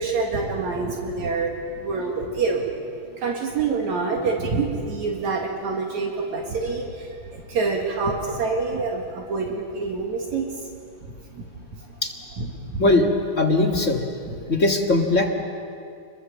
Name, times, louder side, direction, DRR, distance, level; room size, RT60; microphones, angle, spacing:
voice 1, 0.0-2.7 3.1-10.7 11.3-12.0 12.4-12.8 14.4-14.5, right 4 dB, 70° right, 0 dB, 3.3 m, -27 dB
voice 2, 13.4-14.1 14.5-15.3, left 2 dB, 30° left, 1 dB, 1.7 m, -19 dB
29.0 x 21.5 x 7.5 m, 2.4 s
omnidirectional pair, 3.4 m